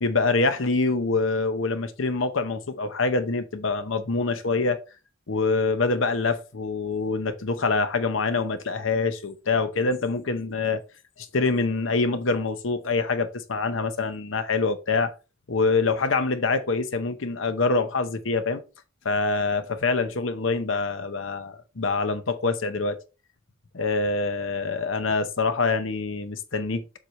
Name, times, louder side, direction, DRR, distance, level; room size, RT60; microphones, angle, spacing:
voice 1, 0.0-4.8 5.3-10.8 11.2-15.1 15.5-18.6 19.0-23.0 23.7-26.8, left 3 dB, 75° left, 0.8 m, -25 dB
7.5 x 4.7 x 3.2 m
head